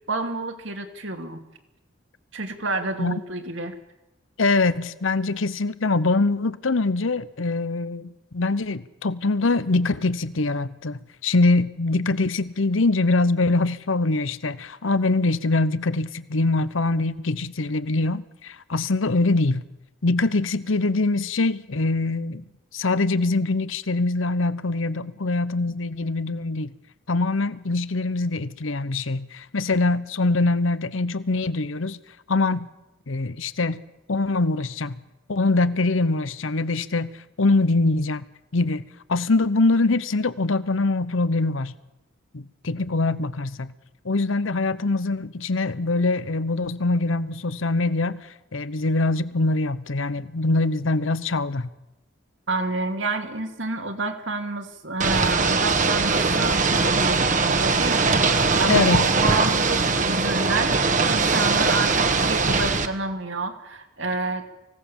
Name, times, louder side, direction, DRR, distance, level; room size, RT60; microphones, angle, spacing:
voice 1, 0.0-1.4 2.3-3.7 52.5-64.4, right 3 dB, 70° right, 2.7 m, -29 dB
voice 2, 4.4-19.6 20.0-22.4 22.7-26.7 27.1-32.0 32.3-32.7 33.1-33.8 34.1-35.0 35.3-38.2 38.5-38.8 39.1-41.7 42.3-43.7 44.0-51.7 58.7-59.1, left 3 dB, 80° left, 0.9 m, -23 dB
Ocean / Boat Water vehicle, 55.0-62.9, right 4 dB, 40° right, 1.4 m, -21 dB
25.0 x 17.0 x 7.2 m
head